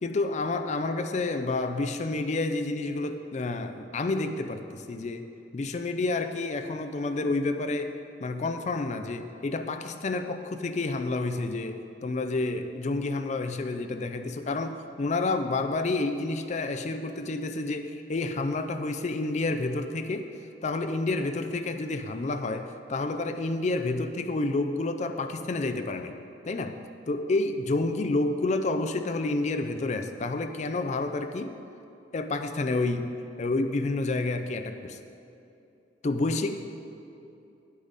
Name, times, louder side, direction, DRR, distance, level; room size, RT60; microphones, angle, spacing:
voice 1, 0.0-20.3 20.6-26.2 26.4-26.8 27.1-31.6 32.1-35.0 36.0-36.7, left 2 dB, 40° left, 7 dB, 0.4 m, -29 dB
8.8 x 8.4 x 4.0 m, 2.7 s
head